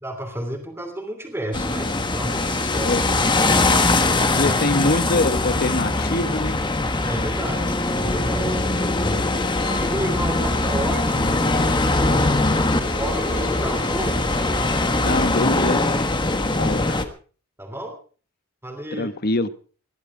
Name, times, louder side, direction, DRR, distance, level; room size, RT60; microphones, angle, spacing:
voice 1, 0.0-3.1 4.5-4.6 7.0-8.6 9.0-14.2 14.9-15.2 17.6-18.0 18.6-19.1, right 1 dB, 10° right, 4 dB, 2.9 m, -32 dB
sound 1, 1.5-17.0, left 2 dB, 20° left, 1.4 m, -21 dB
voice 2, 4.3-6.6 15.0-15.8 16.2-16.9 19.0-19.5, left 2 dB, 45° left, 12 dB, 1.1 m, -24 dB
Bowed string instrument, 9.6-15.3, left 2 dB, 85° left, 4.1 m, -40 dB
20.5 x 12.5 x 4.8 m, 0.41 s
head